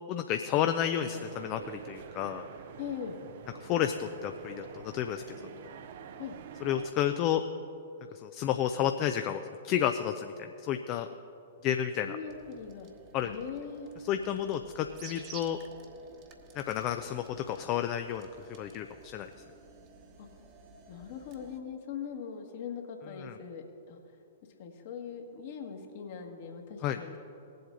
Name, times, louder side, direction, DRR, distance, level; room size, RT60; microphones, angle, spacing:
voice 1, 0.1-2.4 3.6-5.4 6.6-7.4 8.1-11.1 11.6-12.2 13.1-13.4 14.1-15.6 16.5-18.3 18.6-19.3 23.2-23.4 26.8-27.0, left 10 dB, 35° left, 7 dB, 0.5 m, -31 dB
sound 1, 1.1-6.9, right 7 dB, 55° right, 0.6 m, -46 dB
voice 2, 2.8-3.2 6.1-6.3 12.1-12.9 13.2-13.9 20.2-20.3 20.9-24.0 24.6-27.2, left 7 dB, 55° left, 2 dB, 1.6 m, -41 dB
sound 2, 12.3-21.6, right 5 dB, 35° right, 1.2 m, -53 dB
18.5 x 7.8 x 3.8 m, 2.9 s
figure-of-eight pair, 110°, 0 cm